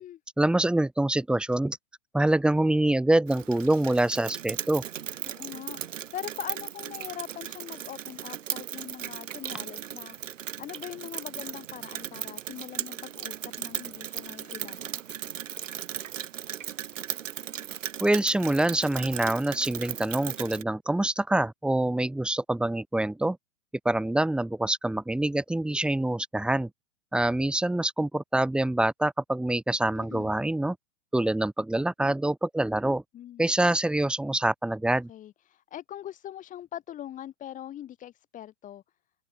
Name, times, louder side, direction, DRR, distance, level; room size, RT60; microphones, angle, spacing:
voice 1, 0.4-1.8 2.1-4.8 18.0-23.4 23.8-26.7 27.1-30.8 31.1-33.0 33.4-35.1, right 1 dB, ahead, 3.1 m, -25 dB
Rain, 3.3-20.6, right 10 dB, 85° right, 3.7 m, -37 dB
voice 2, 5.3-10.2 10.6-14.9 30.0-30.3 33.1-33.4 35.1-38.8, left 11 dB, 20° left, 3.2 m, -42 dB
hypercardioid pair, 155°, 37 cm